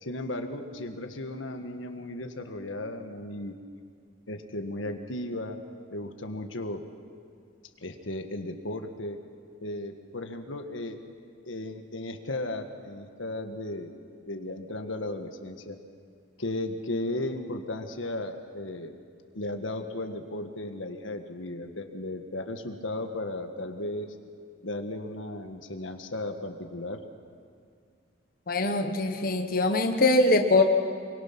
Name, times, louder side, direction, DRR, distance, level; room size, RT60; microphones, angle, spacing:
voice 1, 0.0-3.6 4.3-5.6 5.9-6.8 7.8-9.2 9.6-11.0 11.5-15.8 16.4-19.0 19.4-24.1 24.6-27.0, left 1 dB, 85° left, 6 dB, 1.6 m, -35 dB
voice 2, 28.5-30.6, left 2 dB, 50° left, 5 dB, 1.2 m, -22 dB
25.5 x 23.5 x 6.0 m, 2.2 s
head